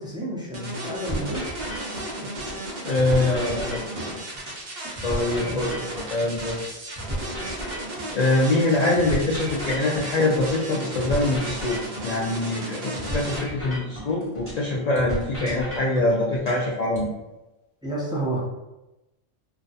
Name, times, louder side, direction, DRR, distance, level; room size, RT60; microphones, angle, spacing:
voice 1, 0.0-1.4 3.1-4.1 5.3-5.8 17.8-18.4, right 1 dB, 5° right, -6 dB, 0.6 m, -32 dB
sound 1, 0.5-13.4, right 1 dB, 45° right, 0.7 m, -34 dB
sound 2, 1.1-2.7 2.9-6.7 6.9-10.7 10.9-14.7 14.9-17.1, equal, 10° left, 1.0 m, -34 dB
voice 2, 2.8-3.9 5.0-5.7 6.1-6.6 8.1-17.1, left 2 dB, 70° left, -3 dB, 0.3 m, -24 dB
2.4 x 2.3 x 4.0 m, 0.99 s
omnidirectional pair, 1.3 m